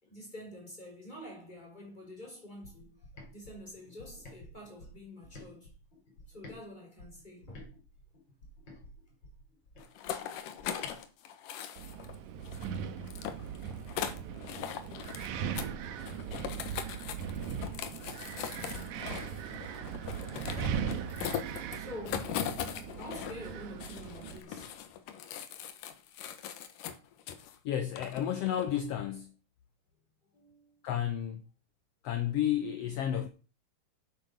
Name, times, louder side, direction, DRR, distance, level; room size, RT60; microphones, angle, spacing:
voice 1, 0.0-3.1 3.3-5.8 6.3-7.7 15.1-15.3 21.7-22.5 23.0-24.7 30.3-30.8, left 1 dB, 15° left, 4.9 m, -47 dB
sound 1, 2.6-6.6 7.0-11.0, left 1 dB, 35° left, 3.3 m, -52 dB
sound 2, 9.8-12.2 12.4-15.3 15.5-15.7 16.0-23.5 23.8-27.6 28.0-28.8, left 9 dB, 85° left, 2.8 m, -40 dB
Wind, 11.8-24.4, right 8 dB, 70° right, 2.2 m, -39 dB
voice 2, 27.6-29.3 30.8-31.4 32.0-33.3, left 10 dB, 70° left, 1.6 m, -31 dB
9.0 x 8.5 x 6.5 m
omnidirectional pair, 3.7 m